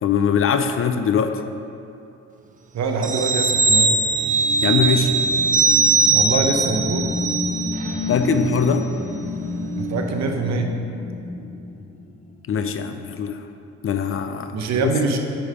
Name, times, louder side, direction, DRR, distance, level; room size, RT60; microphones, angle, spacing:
voice 1, 0.0-1.4 4.6-5.1 8.1-8.9 12.5-13.4 13.8-14.5 14.8-14.9, left 6 dB, 45° left, 8 dB, 0.5 m, -21 dB
voice 2, 2.7-3.9 6.1-7.1 9.8-10.7 14.5-15.2, right 4 dB, 65° right, 4 dB, 0.9 m, -24 dB
sound 1, 3.0-8.1 8.5-8.6, right 4 dB, 25° right, 0.5 m, -20 dB
sound 2, 3.3-12.4, left 1 dB, 25° left, 0.8 m, -30 dB
9.9 x 3.3 x 5.0 m, 2.6 s
cardioid pair, 90°, 30 cm